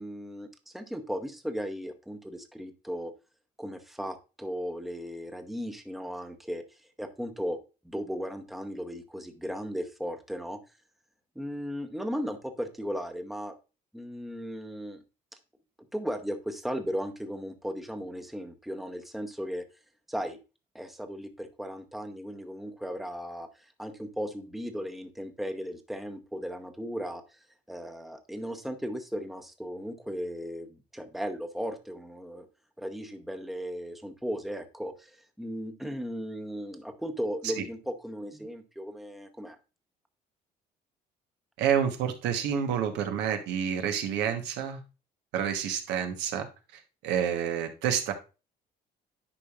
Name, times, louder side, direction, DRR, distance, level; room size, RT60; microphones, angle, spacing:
voice 1, 0.0-3.1 3.6-6.6 7.0-7.6 7.8-10.6 11.4-13.5 13.9-15.0 15.9-19.6 20.1-20.4 20.7-27.4 27.7-32.5 32.8-39.6, equal, ahead, 7 dB, 0.8 m, -36 dB
voice 2, 41.6-44.8 45.3-48.1, right 8 dB, 90° right, 6 dB, 1.1 m, -29 dB
10.0 x 5.0 x 2.4 m, 0.30 s
cardioid pair, 110°, 17 cm